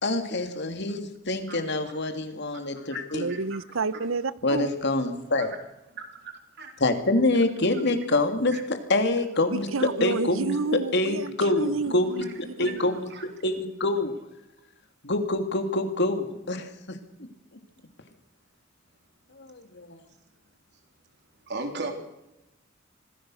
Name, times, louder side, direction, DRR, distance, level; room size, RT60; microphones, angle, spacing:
voice 1, 0.0-3.3 4.4-5.5 6.8-9.7 10.0-12.1 12.6-13.1 13.4-14.1 15.0-17.3 19.4-20.0, left 2 dB, 60° left, 3.0 m, -26 dB
voice 2, 3.1-4.7 9.5-12.9, right 4 dB, 85° right, 1.0 m, -30 dB
voice 3, 6.0-6.3 6.6-6.7 8.5-8.6 12.6-12.7 13.1-13.2 21.5-21.9, right 3 dB, 55° right, 3.7 m, -36 dB
27.0 x 19.0 x 6.6 m
head